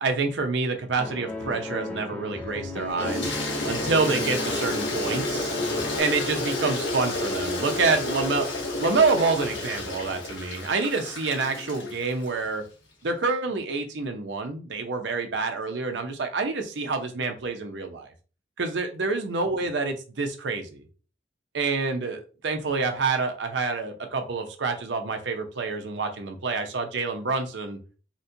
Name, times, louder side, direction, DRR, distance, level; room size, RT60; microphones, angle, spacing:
voice 1, 0.0-5.5 6.0-8.5 8.8-12.6 13.0-18.1 18.6-20.9 21.5-27.8, right 4 dB, 75° right, 5 dB, 0.6 m, -27 dB
sound 1, 1.0-6.0, left 1 dB, 5° left, 0.3 m, -36 dB
Toilet flush, 3.0-12.3, left 2 dB, 80° left, 0.9 m, -30 dB
4.0 x 2.2 x 2.6 m, 0.36 s
head